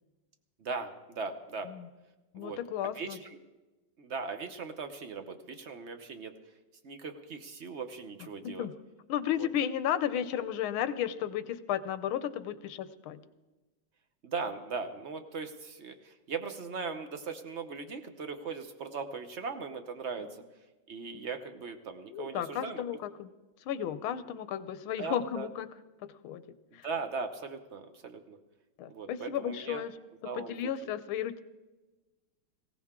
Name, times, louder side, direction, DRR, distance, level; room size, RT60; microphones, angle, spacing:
voice 1, 0.6-1.7 2.4-2.6 2.9-3.4 4.0-6.3 6.8-8.7 9.4-9.5 14.2-20.3 20.9-22.8 25.0-25.5 26.7-28.4 28.9-29.8 30.2-30.7, right 4 dB, 55° right, 7 dB, 0.8 m, -39 dB
voice 2, 2.3-3.2 8.4-8.7 9.1-13.2 20.3-20.4 21.1-21.3 22.1-23.3 23.7-25.7 26.0-26.4 26.7-26.9 28.8-29.9 30.4-31.4, left 10 dB, 85° left, 14 dB, 1.6 m, -34 dB
19.5 x 16.5 x 3.7 m, 1.1 s
omnidirectional pair, 2.2 m